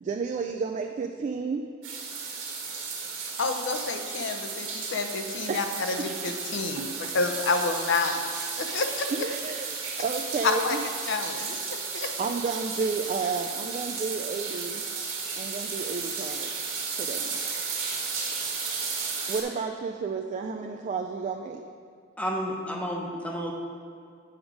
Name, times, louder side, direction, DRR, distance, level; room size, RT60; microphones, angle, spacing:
voice 1, 0.0-1.7 5.5-5.6 6.0-6.1 6.8-7.1 9.1-10.9 12.2-14.9 15.4-16.5 17.0-17.4 19.3-21.6, right 5 dB, 35° right, 4 dB, 0.3 m, -32 dB
sound 1, 1.8-19.4, right 5 dB, 70° right, 1.5 m, -34 dB
voice 2, 3.4-5.9 6.2-8.2 8.6-9.1 10.4-10.8 11.1-11.7 11.9-12.1, left 4 dB, 65° left, 6 dB, 0.6 m, -29 dB
voice 3, 22.2-23.5, equal, 5° left, 0 dB, 0.8 m, -31 dB
7.9 x 5.1 x 4.8 m, 2.3 s
head